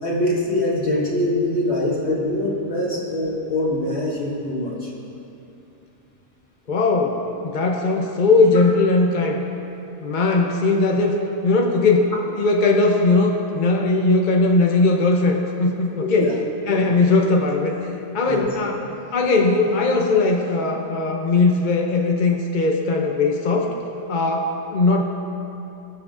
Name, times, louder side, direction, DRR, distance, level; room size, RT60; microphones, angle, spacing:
voice 1, 0.0-4.9 16.2-16.3 16.7-16.9 18.3-18.5, left 1 dB, 65° left, -4 dB, 2.0 m, -23 dB
voice 2, 6.7-9.4 10.0-11.2 11.4-16.3 16.7-17.8 18.1-18.8 19.1-23.7 24.1-25.0, left 3 dB, 50° left, 2 dB, 0.7 m, -19 dB
19.5 x 7.5 x 2.5 m, 2.9 s
omnidirectional pair, 1.2 m